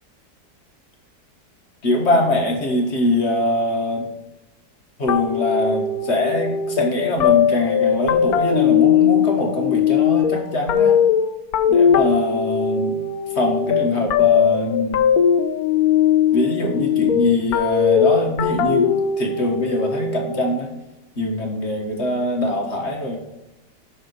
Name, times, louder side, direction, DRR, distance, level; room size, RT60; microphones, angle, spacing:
voice 1, 1.8-4.1 5.0-11.0 11.7-13.0 13.3-15.0 16.3-20.7 21.2-23.2, left 1 dB, 40° left, 2 dB, 1.6 m, -23 dB
sound 1, 5.1-20.4, left 8 dB, 65° left, 1.1 m, -19 dB
7.6 x 6.3 x 4.7 m, 0.96 s
omnidirectional pair, 1.9 m